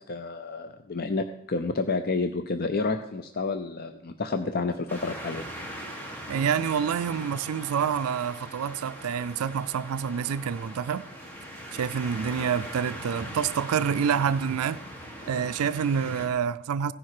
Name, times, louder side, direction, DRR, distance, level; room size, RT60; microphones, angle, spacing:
voice 1, 0.1-5.4, left 3 dB, 45° left, 0.6 m, -30 dB
sound 1, 4.9-16.3, equal, 10° left, 1.9 m, -40 dB
voice 2, 6.3-11.1 11.7-14.8 15.3-16.9, right 7 dB, 75° right, 0.4 m, -27 dB
16.5 x 10.0 x 4.9 m
head